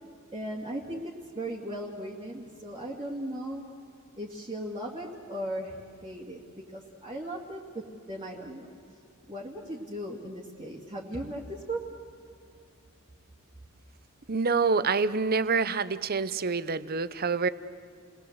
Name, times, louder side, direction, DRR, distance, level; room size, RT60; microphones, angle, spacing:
voice 1, 0.3-3.6 4.2-5.7 6.0-8.8 9.3-11.8, right 1 dB, 25° right, -4 dB, 2.2 m, -37 dB
voice 2, 14.3-17.5, right 4 dB, 45° right, 15 dB, 0.8 m, -26 dB
29.5 x 20.5 x 8.1 m, 2.6 s
head